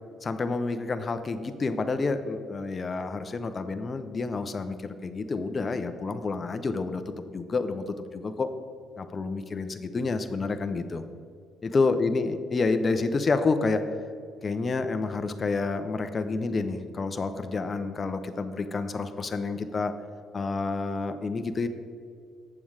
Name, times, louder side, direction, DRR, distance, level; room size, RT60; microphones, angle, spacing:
voice 1, 0.2-7.0 7.3-8.5 9.0-11.0 11.6-13.8 14.4-19.9 20.3-21.7, left 3 dB, 40° left, 8 dB, 0.7 m, -29 dB
8.5 x 7.1 x 4.8 m, 2.2 s
hypercardioid pair, 55°, 0 cm